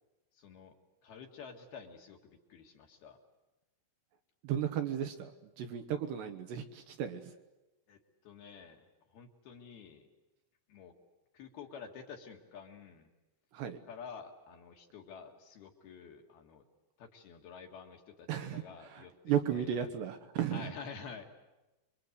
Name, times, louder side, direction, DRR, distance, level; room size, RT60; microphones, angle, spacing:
voice 1, 0.3-0.7 1.0-3.2 7.9-10.1 10.7-10.9 11.3-13.1 13.9-16.6 17.0-19.1 19.5-19.9 20.5-21.2, left 6 dB, 60° left, 2 dB, 3.3 m, -49 dB
voice 2, 4.4-7.3 13.5-13.8 18.3-20.7, right 9 dB, 70° right, 6 dB, 3.0 m, -35 dB
27.5 x 23.5 x 8.1 m, 1.1 s
omnidirectional pair, 5.9 m